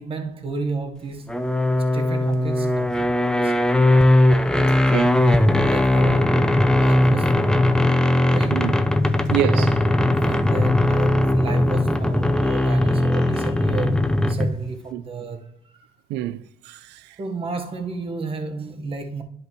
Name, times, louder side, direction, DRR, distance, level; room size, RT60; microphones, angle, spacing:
voice 1, 0.0-1.4 1.9-4.1 5.6-6.5 6.8-7.8 8.3-8.6 9.5-9.9 10.2-15.9 17.2-19.2, right 4 dB, 35° right, 1.3 m, -32 dB
sound 1, 1.3-14.7, left 1 dB, 5° left, 0.5 m, -19 dB
voice 2, 4.9-5.2 8.5-8.7 9.3-9.8 14.9-15.0 16.1-17.2, right 12 dB, 90° right, 0.5 m, -27 dB
10.5 x 5.2 x 3.1 m
cardioid pair, 110°, 17 cm